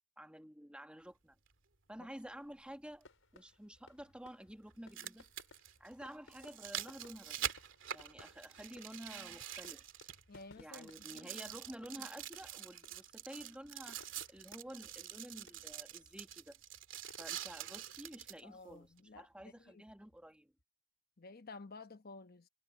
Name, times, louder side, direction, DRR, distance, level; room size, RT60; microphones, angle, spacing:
voice 1, 0.2-1.4 1.9-3.1 3.3-5.3 5.8-7.5 7.9-9.9 10.6-16.6 17.2-20.5, equal, 5° right, 1.8 m, -51 dB
sound 1, 1.5-1.6 3.5-3.6 4.7-10.4 10.7-18.4 19.0-19.1, right 11 dB, 70° right, 2.6 m, -46 dB
sound 2, 3.0-20.6, left 2 dB, 90° left, 5.4 m, -64 dB
voice 2, 10.3-11.5 18.4-19.8 21.2-22.5, left 3 dB, 50° left, 1.0 m, -53 dB
head